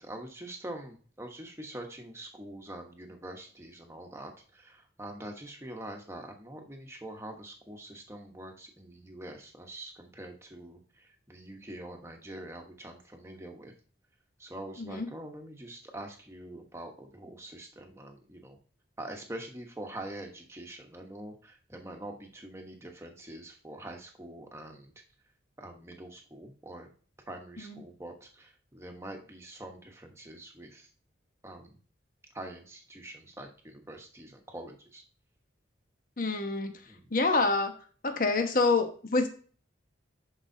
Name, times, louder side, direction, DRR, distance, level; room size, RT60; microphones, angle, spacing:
voice 1, 0.0-13.7 14.4-18.6 19.0-24.9 25.6-26.9 27.3-30.9 31.4-31.8 32.3-35.0 36.9-37.1, right 1 dB, 15° right, 3 dB, 1.1 m, -44 dB
voice 2, 36.2-36.7 37.1-37.7 38.0-39.3, left 3 dB, 45° left, 6 dB, 1.0 m, -27 dB
10.5 x 4.9 x 2.7 m, 0.42 s
head